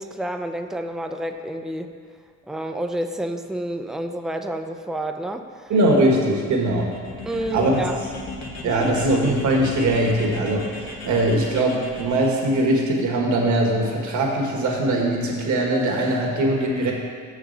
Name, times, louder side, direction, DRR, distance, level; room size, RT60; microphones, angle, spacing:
voice 1, 0.0-1.9 2.5-5.7 7.3-8.0 8.6-8.9, right 1 dB, ahead, 6 dB, 0.4 m, -29 dB
voice 2, 5.7-6.9 7.5-7.9 8.6-16.9, right 1 dB, 70° right, 0 dB, 1.6 m, -21 dB
sound 1, 6.5-12.6, left 2 dB, 60° left, 1.2 m, -36 dB
6.2 x 5.0 x 6.5 m, 2.2 s
cardioid pair, 90°, 30 cm